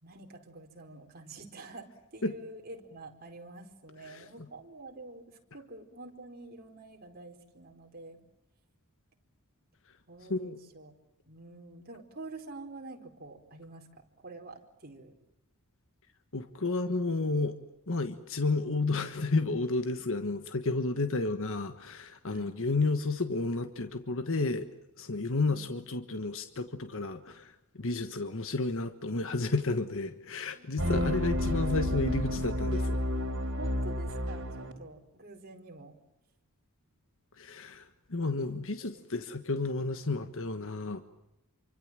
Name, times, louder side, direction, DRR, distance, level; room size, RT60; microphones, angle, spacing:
voice 1, 0.0-8.2 10.1-10.9 11.3-15.1 22.3-22.6 25.4-25.7 30.5-31.1 33.6-36.0 38.3-38.6 38.9-39.0, right 2 dB, 45° right, 2 dB, 4.4 m, -48 dB
voice 2, 16.3-17.5 17.9-24.7 25.0-33.0 37.4-41.0, left 3 dB, 60° left, 9 dB, 1.4 m, -31 dB
sound 1, 30.8-34.7, left 1 dB, 60° right, 4.3 m, -30 dB
28.0 x 25.0 x 7.5 m, 0.87 s
head